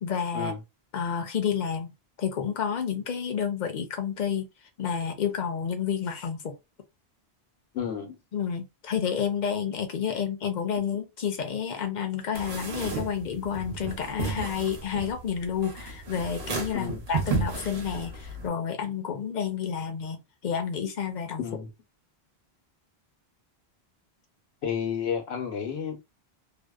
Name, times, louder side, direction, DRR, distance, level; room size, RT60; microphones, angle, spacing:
voice 1, 0.0-0.5 0.9-1.9 2.2-4.5 4.8-6.5 8.3-21.4, left 7 dB, 55° left, 0.6 m, -30 dB
voice 2, 7.7-8.2 16.7-17.0 21.4-21.7 24.6-26.0, left 7 dB, 90° left, 1.0 m, -31 dB
sound 1, 12.3-18.5, right 4 dB, 80° right, 1.0 m, -33 dB
2.6 x 2.0 x 2.3 m
omnidirectional pair, 1.0 m